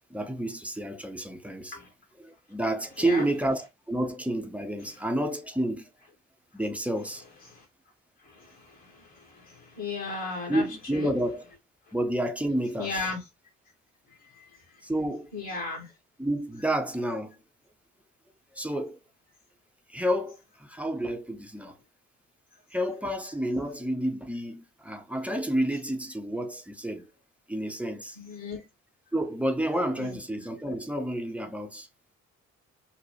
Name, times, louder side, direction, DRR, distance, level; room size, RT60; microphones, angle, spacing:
voice 1, 0.1-1.7 2.2-5.8 6.5-7.2 10.5-11.4 11.9-13.0 14.8-15.3 16.2-17.3 18.5-19.0 19.9-21.7 22.7-27.1 27.5-28.2 29.1-31.9, right 1 dB, 5° right, 0.5 m, -30 dB
voice 2, 8.2-10.7 10.9-11.1 12.8-13.2 14.1-14.6 15.3-15.9 28.2-28.6 29.9-30.2, left 4 dB, 60° left, 1.9 m, -36 dB
4.0 x 2.2 x 3.0 m
figure-of-eight pair, 40°, 41 cm